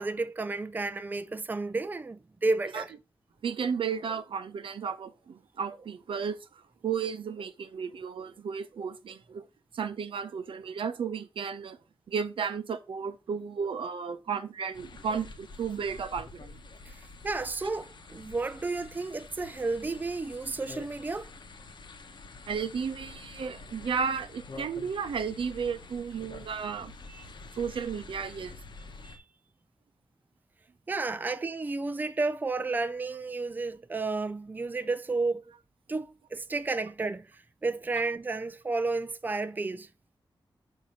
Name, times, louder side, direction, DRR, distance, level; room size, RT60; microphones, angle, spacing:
voice 1, 0.0-2.9 16.9-17.0 17.2-21.3 27.1-27.3 29.0-29.2 30.9-35.4 35.9-37.3 37.6-39.9, right 3 dB, 20° right, 0.4 m, -32 dB
voice 2, 3.4-9.4 9.7-11.8 12.1-16.6 22.5-26.9 27.6-28.6, right 6 dB, 80° right, 0.6 m, -33 dB
sound 1, 14.7-29.2, left 3 dB, 60° left, 0.8 m, -47 dB
6.6 x 2.7 x 5.5 m
wide cardioid pair, 120°, 9 cm